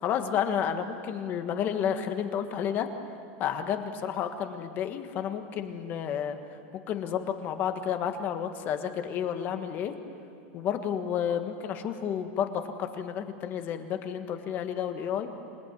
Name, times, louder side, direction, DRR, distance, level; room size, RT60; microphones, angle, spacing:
voice 1, 0.0-2.9 3.4-6.4 6.9-9.9 10.5-15.3, left 8 dB, 30° left, 7 dB, 1.5 m, -31 dB
27.0 x 18.5 x 9.5 m, 2.7 s
supercardioid pair, 170°, 7 cm